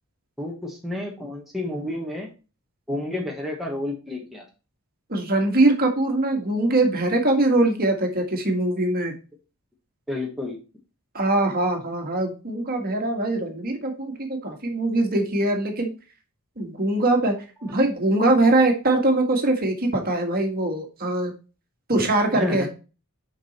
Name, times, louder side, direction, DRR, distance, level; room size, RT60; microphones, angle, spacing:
voice 1, 0.4-2.3 2.9-4.4 10.1-10.6 22.3-22.7, left 1 dB, ahead, -1 dB, 1.5 m, -30 dB
voice 2, 5.1-9.1 11.1-15.9 16.6-21.3 21.9-22.7, right 2 dB, 40° right, 3 dB, 1.8 m, -22 dB
7.3 x 5.4 x 4.3 m, 0.33 s
head